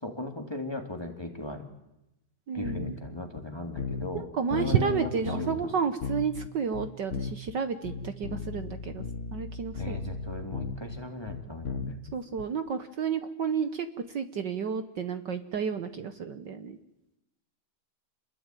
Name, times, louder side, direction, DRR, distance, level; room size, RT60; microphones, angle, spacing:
voice 1, 0.0-1.6 2.5-5.1 5.4-5.7 9.8-12.0, left 2 dB, 10° left, 4 dB, 2.6 m, -37 dB
voice 2, 2.5-3.0 4.4-9.0 9.3-10.0 12.1-16.8, right 6 dB, 60° right, 10 dB, 1.7 m, -31 dB
sound 1, 2.6-3.1 3.4-3.5 3.8-4.2 4.5-5.7 6.0-7.5 7.8-12.4, left 5 dB, 45° left, 1.2 m, -36 dB
28.0 x 21.5 x 9.2 m, 0.92 s
omnidirectional pair, 2.4 m